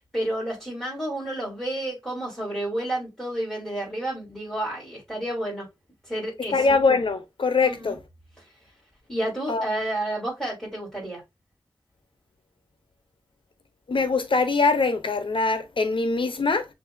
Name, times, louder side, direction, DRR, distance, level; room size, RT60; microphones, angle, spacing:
voice 1, 0.1-5.6 6.1-6.7 7.6-8.0 9.1-11.2, right 1 dB, 5° left, 3.3 m, -30 dB
voice 2, 6.5-8.0 9.5-9.6 13.9-16.7, left 4 dB, 80° left, 0.8 m, -22 dB
6.5 x 2.7 x 2.6 m
wide cardioid pair, 70°, 9 cm